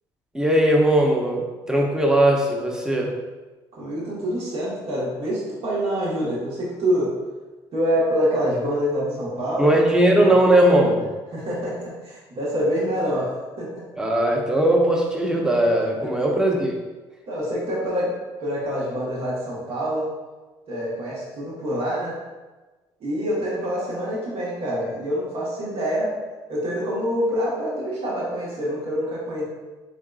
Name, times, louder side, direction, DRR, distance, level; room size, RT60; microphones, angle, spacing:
voice 1, 0.3-3.1 9.6-11.1 14.0-16.8, right 1 dB, 5° right, -1 dB, 0.7 m, -19 dB
voice 2, 3.7-7.1 7.7-9.8 10.2-10.3 11.3-13.3 13.6-13.8 16.0-16.1 17.3-18.1 18.4-20.1 20.7-22.1 23.0-26.1 26.5-29.4, equal, 65° right, -6 dB, 1.3 m, -26 dB
3.8 x 3.5 x 2.4 m, 1.2 s
supercardioid pair, 65°, 11 cm